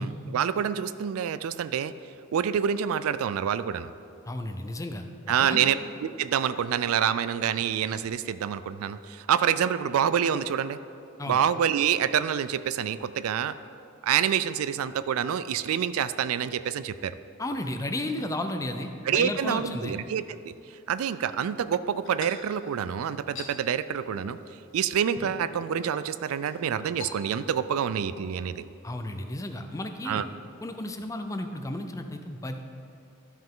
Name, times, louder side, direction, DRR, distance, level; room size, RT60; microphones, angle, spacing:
voice 1, 0.0-1.9 2.3-3.9 5.3-5.8 6.0-10.8 11.3-13.5 14.0-17.1 19.0-20.5 20.9-24.4 24.7-28.7 30.1-30.2, right 8 dB, 75° right, 14 dB, 0.3 m, -27 dB
voice 2, 4.3-5.7 11.2-11.4 17.4-20.0 28.8-30.2 30.6-32.7, left 1 dB, 15° left, 6 dB, 0.5 m, -33 dB
sound 1, 22.0-23.5 24.1-24.4 24.7-24.8 25.1-25.7 26.2-26.5 27.0-27.6 27.9-28.3, left 3 dB, 65° left, 1.0 m, -43 dB
12.5 x 5.5 x 3.7 m, 2.5 s
head